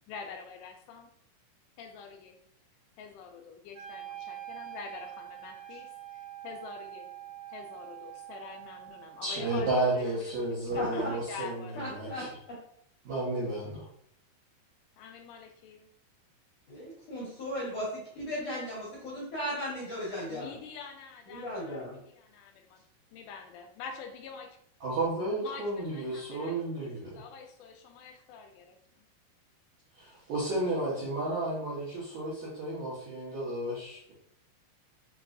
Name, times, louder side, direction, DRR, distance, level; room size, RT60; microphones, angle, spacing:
voice 1, 0.1-1.1 1.8-2.4 3.0-5.9 6.4-7.1 7.5-11.8 15.0-15.9 20.3-22.8 23.1-24.6 25.4-29.1, left 6 dB, 85° left, 4 dB, 2.6 m, -46 dB
Wind instrument woodwind instrument, 3.7-9.8, right 12 dB, 90° right, 1.9 m, -45 dB
voice 2, 9.2-12.3 13.0-13.9 24.8-27.2 30.0-34.1, right 2 dB, 70° right, -8 dB, 1.7 m, -32 dB
voice 3, 10.7-11.1 11.7-12.6 16.7-20.6 21.3-22.0, equal, 65° left, -7 dB, 1.6 m, -36 dB
6.5 x 3.0 x 2.6 m, 0.71 s
omnidirectional pair, 5.1 m